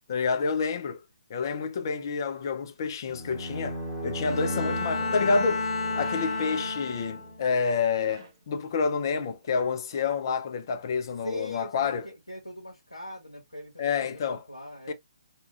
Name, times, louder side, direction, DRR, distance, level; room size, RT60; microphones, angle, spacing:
voice 1, 0.1-1.0 1.3-12.1 13.8-14.4 14.9-15.0, left 5 dB, 45° left, 0.5 m, -28 dB
sound 1, 3.1-7.4, equal, 20° left, 1.0 m, -36 dB
Bowed string instrument, 4.2-7.4, left 3 dB, 70° left, 0.8 m, -31 dB
sound 2, 6.0-6.9 8.0-8.5 9.4-9.6 9.9-10.2 10.7-10.8, right 6 dB, 45° right, 0.5 m, -49 dB
voice 2, 11.2-14.9, left 1 dB, 90° left, 1.2 m, -41 dB
2.8 x 2.3 x 2.8 m
figure-of-eight pair, 135°, 3 cm